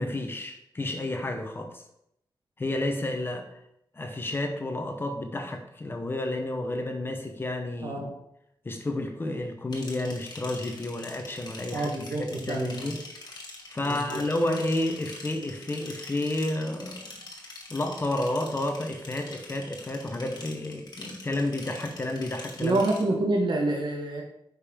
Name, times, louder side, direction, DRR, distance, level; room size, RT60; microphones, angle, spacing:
voice 1, 0.0-1.8 2.6-3.5 3.9-8.0 8.6-13.0 13.7-17.2 17.7-22.8, left 1 dB, 30° left, 4 dB, 0.9 m, -31 dB
sound 1, 9.7-23.0, left 2 dB, 60° left, 1.7 m, -44 dB
voice 2, 11.7-12.9 13.8-14.2 22.6-24.2, right 2 dB, 70° right, 1 dB, 1.2 m, -27 dB
9.3 x 5.3 x 3.6 m, 0.77 s
wide cardioid pair, 175°, 8 cm